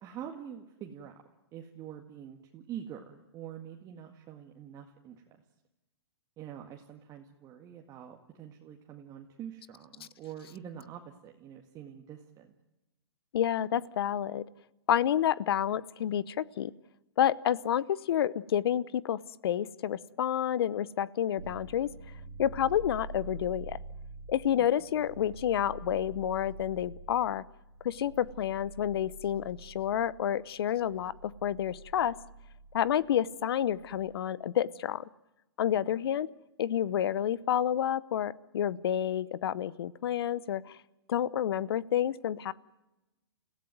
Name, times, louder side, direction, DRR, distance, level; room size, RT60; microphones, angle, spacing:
voice 1, 0.0-1.2 1.5-5.4 6.4-12.5 24.6-24.7 35.9-36.0, right 9 dB, 25° right, 2 dB, 1.9 m, -45 dB
voice 2, 13.3-14.4 14.9-16.7 17.2-21.9 22.4-23.8 24.3-27.4 27.8-32.2 32.7-35.0 35.6-36.3 36.6-40.7 41.1-42.5, left 10 dB, 65° left, 20 dB, 0.9 m, -29 dB
sound 1, 21.4-34.1, right 3 dB, 85° right, 3.6 m, -47 dB
30.0 x 16.0 x 9.3 m, 1.0 s
hypercardioid pair, 130°, 14 cm